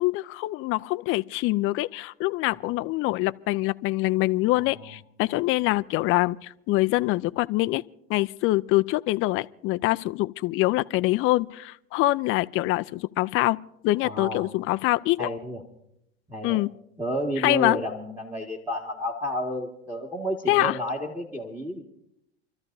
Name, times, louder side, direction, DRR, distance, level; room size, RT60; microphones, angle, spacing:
voice 1, 0.0-7.8 8.1-13.6 13.8-15.3 16.4-16.7 17.4-17.8 20.5-20.8, left 18 dB, 40° left, 0.5 m, -24 dB
voice 2, 4.6-4.9 14.0-14.5 15.2-15.6 16.3-16.6 17.0-21.8, equal, 5° right, 1.9 m, -31 dB
29.0 x 13.0 x 2.7 m
hypercardioid pair, 95°, 32 cm